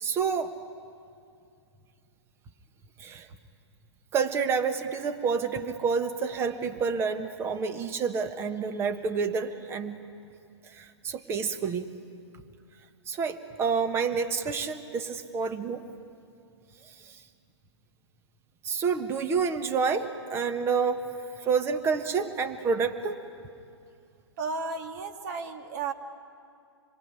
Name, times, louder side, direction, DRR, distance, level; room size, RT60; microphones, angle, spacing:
voice 1, 0.0-0.5 3.0-3.3 4.1-10.0 10.8-11.9 13.1-15.8 18.6-21.1 21.4-23.2, right 5 dB, 15° right, 9 dB, 1.3 m, -28 dB
voice 2, 24.4-25.9, right 4 dB, 40° right, 6 dB, 2.0 m, -33 dB
26.5 x 22.5 x 9.8 m, 2.5 s
figure-of-eight pair, 120°, 15 cm